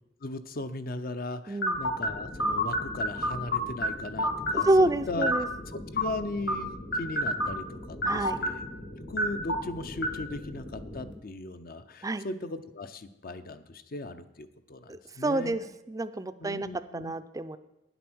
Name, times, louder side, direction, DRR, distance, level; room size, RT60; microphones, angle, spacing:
voice 1, 0.2-5.3 5.7-8.7 9.0-15.7 16.4-17.1, left 2 dB, 55° left, 11 dB, 0.7 m, -38 dB
voice 2, 1.5-1.8 4.5-5.5 8.0-8.4 12.0-12.3 14.9-16.7 16.9-17.6, right 2 dB, 20° right, 12 dB, 0.4 m, -28 dB
sound 1, 1.6-11.1, equal, 75° left, 1.5 m, -31 dB
9.6 x 8.1 x 6.1 m, 0.88 s
head